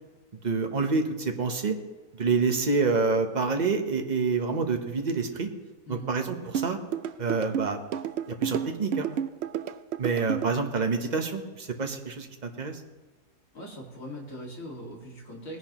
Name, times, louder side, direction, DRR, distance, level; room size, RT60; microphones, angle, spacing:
voice 1, 0.4-1.7 2.1-5.5 5.9-6.8 7.2-7.8 8.3-9.1 10.0-12.8, right 4 dB, 30° right, 4 dB, 1.0 m, -27 dB
sound 1, 6.5-10.5, right 8 dB, 80° right, 0.5 m, -31 dB
voice 2, 13.5-15.6, equal, 55° left, -1 dB, 2.6 m, -41 dB
19.5 x 10.5 x 3.0 m, 1.3 s
omnidirectional pair, 1.7 m